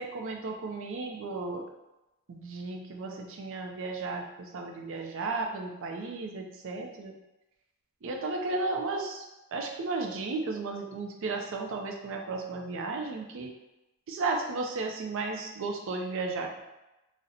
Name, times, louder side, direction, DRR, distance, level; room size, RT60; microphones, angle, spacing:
voice 1, 0.0-1.6 2.3-7.1 8.0-9.3 9.5-13.5 14.1-16.6, right 3 dB, 65° right, 3 dB, 0.4 m, -34 dB
2.8 x 2.1 x 3.7 m, 0.97 s
head